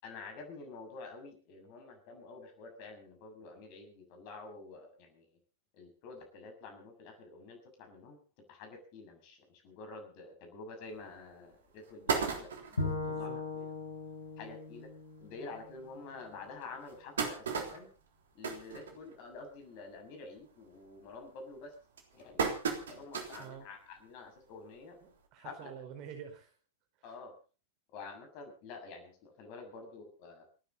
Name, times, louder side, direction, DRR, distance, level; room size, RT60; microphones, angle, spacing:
voice 1, 0.0-5.3 5.7-8.2 8.5-13.7 14.4-14.9 15.2-17.9 18.3-21.7 22.1-22.5 22.8-25.0 25.4-25.7 27.0-27.3 27.9-30.5, left 3 dB, 45° left, 4 dB, 6.9 m, -49 dB
sound 1, 11.0-11.1 11.5-11.6 11.8-12.9 13.5-13.6 13.8-13.9 14.3-14.4 15.2-15.3 15.8-15.9 16.6-19.5 19.8-20.2 20.5-20.9 21.5-23.5 24.0-24.1 25.3-25.4, right 5 dB, 65° right, 3.5 m, -35 dB
Bowed string instrument, 12.8-16.0, left 3 dB, 75° left, 3.1 m, -39 dB
voice 2, 13.0-13.4 23.4-23.6 25.0-26.5 27.0-27.1, right 8 dB, 40° right, 6 dB, 4.8 m, -48 dB
29.0 x 10.0 x 4.1 m, 0.37 s
figure-of-eight pair, 90°, 0 cm